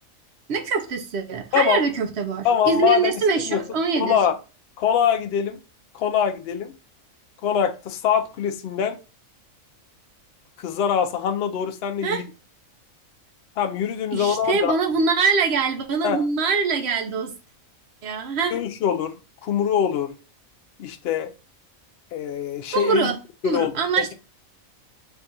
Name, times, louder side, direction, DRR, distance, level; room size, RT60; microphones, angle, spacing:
voice 1, 0.5-4.2 12.0-12.2 14.1-17.3 18.0-18.6 22.7-23.2 23.4-24.1, right 5 dB, 60° right, 0.8 m, -23 dB
voice 2, 1.5-1.8 2.4-3.1 3.4-3.6 4.0-4.3 4.8-5.6 5.9-6.7 7.4-9.0 10.6-12.3 13.6-14.7 16.0-16.2 18.5-19.1 19.4-20.1 20.8-21.3 22.1-23.1 23.4-23.7, left 8 dB, 65° left, 0.7 m, -23 dB
3.6 x 2.3 x 3.9 m
omnidirectional pair, 1.4 m